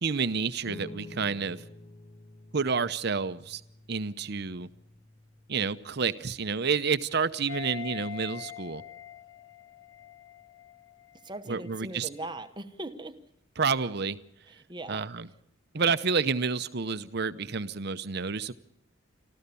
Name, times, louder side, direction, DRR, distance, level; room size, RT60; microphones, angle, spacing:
voice 1, 0.0-1.6 2.5-3.6 3.9-4.7 5.5-8.8 11.5-12.1 13.6-14.2 14.9-15.3 15.7-18.5, right 5 dB, 55° right, 0.8 m, -29 dB
sound 1, 0.7-11.4, left 1 dB, 40° left, 1.7 m, -52 dB
sound 2, 7.5-11.4 11.7-11.8, left 12 dB, 60° left, 0.7 m, -44 dB
voice 2, 11.2-13.2 14.5-15.1, right 2 dB, 25° right, 1.0 m, -40 dB
26.0 x 14.0 x 6.9 m
head